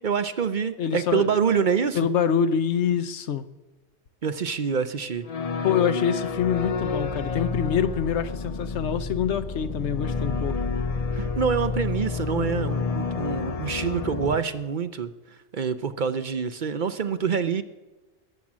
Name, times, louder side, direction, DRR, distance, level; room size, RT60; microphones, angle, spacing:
voice 1, 0.0-2.0 4.2-5.3 11.1-15.1 15.5-17.6, right 6 dB, 50° right, 0.7 m, -26 dB
voice 2, 0.8-1.3 1.9-3.5 5.6-10.6, left 8 dB, 80° left, 1.0 m, -25 dB
sound 1, 5.2-14.4, left 4 dB, 40° left, 0.6 m, -29 dB
20.5 x 7.5 x 7.3 m
omnidirectional pair, 1.2 m